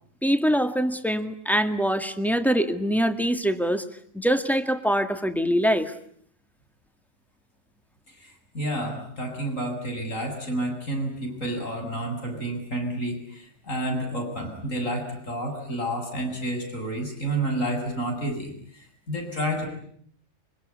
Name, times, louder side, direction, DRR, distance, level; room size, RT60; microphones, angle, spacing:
voice 1, 0.2-3.8 4.1-5.9, equal, ahead, 8 dB, 1.9 m, -24 dB
voice 2, 8.2-19.7, right 1 dB, 75° left, 3 dB, 8.2 m, -30 dB
25.5 x 24.5 x 9.6 m, 0.64 s
omnidirectional pair, 1.4 m